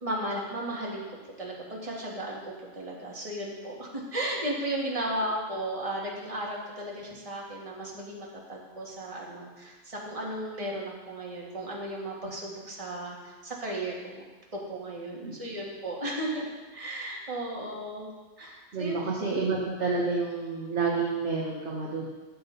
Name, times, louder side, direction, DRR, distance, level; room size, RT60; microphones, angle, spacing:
voice 1, 0.0-14.2 14.5-18.1 18.4-19.3, right 1 dB, 15° right, -4 dB, 2.0 m, -35 dB
voice 2, 18.7-22.1, right 4 dB, 40° right, -3 dB, 1.5 m, -29 dB
14.5 x 7.5 x 4.1 m, 1.3 s
omnidirectional pair, 2.1 m